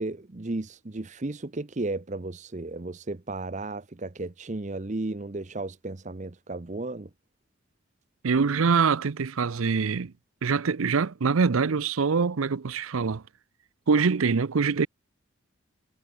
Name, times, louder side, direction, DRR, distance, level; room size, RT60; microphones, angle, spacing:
voice 1, 0.0-7.1, right 2 dB, 35° right, 0.7 m, -34 dB
voice 2, 8.2-10.1 10.4-13.2 13.9-14.9, right 5 dB, 85° right, 0.6 m, -24 dB
head